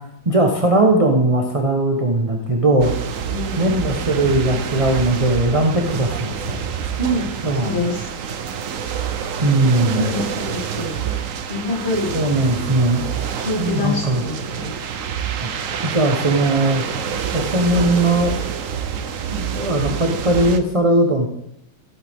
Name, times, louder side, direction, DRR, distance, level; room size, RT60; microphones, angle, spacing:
voice 1, 0.2-2.9 3.6-6.6 7.4-7.7 9.4-10.1 12.1-13.1 13.6-14.2 15.4-15.5 15.8-16.8 17.3-18.3 19.3-21.3, right 2 dB, 25° right, 1 dB, 0.8 m, -19 dB
sound 1, 2.8-20.6, right 8 dB, 60° right, 0.8 m, -27 dB
voice 2, 7.5-8.1 9.9-11.1 11.5-12.2 13.4-14.8, left 1 dB, 30° left, -4 dB, 3.3 m, -25 dB
14.0 x 8.1 x 3.6 m, 0.79 s
omnidirectional pair, 2.2 m